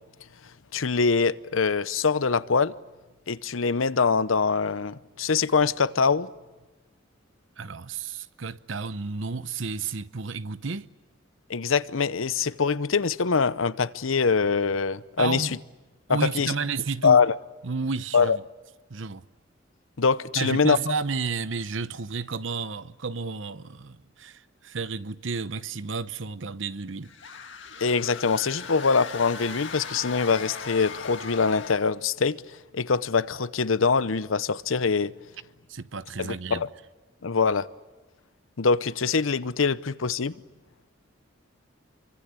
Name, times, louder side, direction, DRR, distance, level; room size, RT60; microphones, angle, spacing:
voice 1, 0.7-2.7 3.3-6.3 11.5-15.5 16.1-16.5 17.0-17.3 18.1-18.4 20.0-20.8 27.8-32.4 32.7-35.1 36.2-36.7 37.2-37.7 38.6-40.4, left 5 dB, 80° left, 0.8 m, -23 dB
voice 2, 7.6-10.9 15.2-15.6 16.1-17.2 17.6-18.4 18.9-19.2 20.3-27.1 35.7-36.7, right 4 dB, 70° right, 0.9 m, -32 dB
sound 1, 27.0-32.0, left 5 dB, 65° left, 1.8 m, -39 dB
28.0 x 24.5 x 8.3 m
head